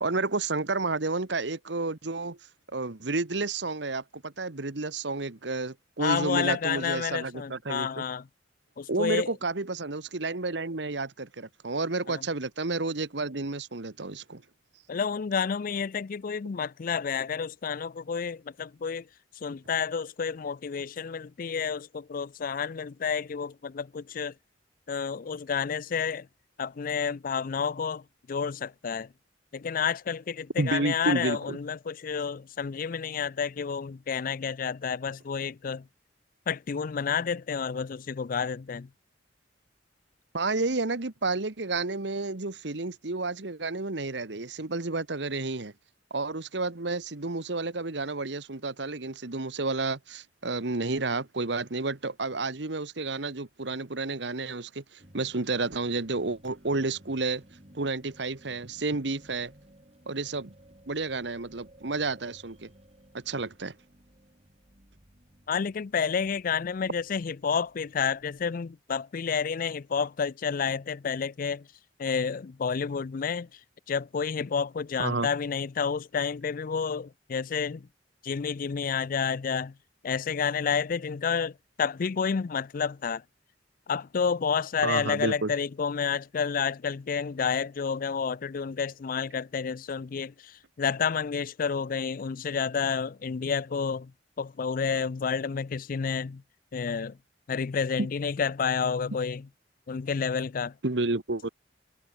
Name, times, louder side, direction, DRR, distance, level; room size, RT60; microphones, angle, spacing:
voice 1, 0.0-2.4 2.7-8.0 8.9-14.4 30.6-31.6 40.3-45.7 46.1-57.4 57.7-59.5 60.1-60.5 60.9-62.7 63.1-63.7 75.0-75.3 84.8-85.5 100.8-101.5, right 3 dB, 70° right, 1.4 m, -31 dB
voice 2, 6.0-8.3 8.8-9.3 12.1-12.2 14.9-19.1 19.4-24.3 24.9-26.3 26.6-29.1 29.5-35.9 36.5-38.9 65.5-71.7 72.0-73.6 73.9-77.9 78.2-79.8 80.0-83.2 83.9-94.1 94.4-96.4 96.7-97.2 97.5-99.5 99.9-100.7, left 6 dB, 50° left, 0.4 m, -30 dB
sound 1, 55.0-68.5, right 1 dB, 35° right, 5.0 m, -57 dB
head